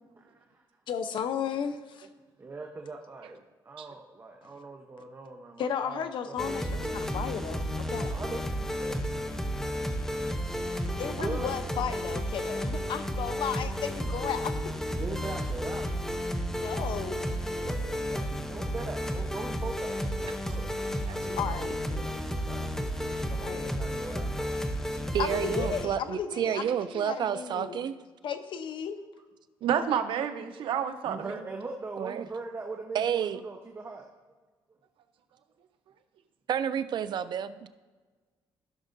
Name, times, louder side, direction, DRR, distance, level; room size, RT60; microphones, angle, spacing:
voice 1, 0.2-0.6 2.4-6.0 6.3-6.6 8.0-9.1 11.0-11.6 15.0-15.9 17.5-20.7 21.1-21.6 21.9-22.8 23.3-24.7 25.3-25.4 31.0-34.1, right 3 dB, 25° right, 2 dB, 0.8 m, -41 dB
voice 2, 0.9-2.1 5.6-8.1 11.0-14.7 16.6-17.3 21.4-21.8 23.4-23.7 25.2-27.9 28.2-29.0, left 8 dB, 65° left, 8 dB, 0.8 m, -34 dB
sound 1, 6.4-25.9, equal, 5° left, 0.7 m, -32 dB
voice 3, 25.1-28.0 32.0-32.2 32.9-33.4 36.5-37.7, right 9 dB, 55° right, 13 dB, 0.4 m, -30 dB
voice 4, 29.6-31.4, right 8 dB, 70° right, 8 dB, 0.8 m, -30 dB
15.5 x 6.2 x 2.6 m, 1.3 s
cardioid pair, 125°, 9 cm